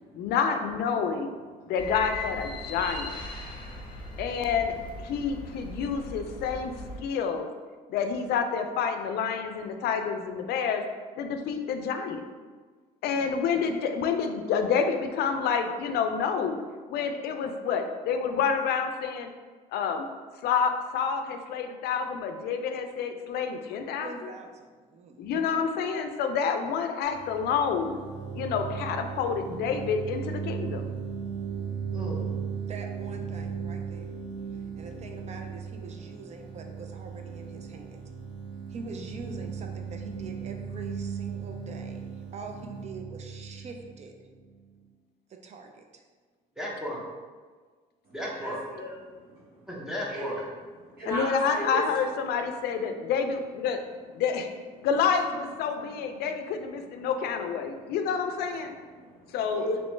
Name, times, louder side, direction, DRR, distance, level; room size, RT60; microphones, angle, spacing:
voice 1, 0.1-1.3 1.7-3.2 4.2-6.7 7.0-7.5 7.9-10.8 11.2-12.3 13.0-16.6 16.9-19.3 19.7-20.1 20.4-24.3 25.2-28.0 28.3-30.8 51.1-53.8 54.1-54.5 54.8-58.7 59.3-59.7, left 6 dB, 70° left, 6 dB, 0.4 m, -28 dB
sound 1, 1.8-7.0, left 2 dB, 30° left, 0.8 m, -39 dB
voice 2, 24.0-25.5 32.7-34.1 34.5-38.0 38.7-44.3 45.3-46.0, right 4 dB, 40° right, 3 dB, 0.4 m, -44 dB
sound 2, 27.1-44.6, right 6 dB, 25° right, 1.1 m, -37 dB
voice 3, 31.9-32.3 46.6-47.0 48.1-48.6 49.7-50.5, equal, 5° right, -5 dB, 0.8 m, -34 dB
voice 4, 48.4-49.5 50.1-50.3 50.8-51.8 58.9-59.8, equal, 60° right, -9 dB, 1.3 m, -36 dB
3.1 x 3.0 x 3.1 m, 1.5 s
cardioid pair, 110°, 17 cm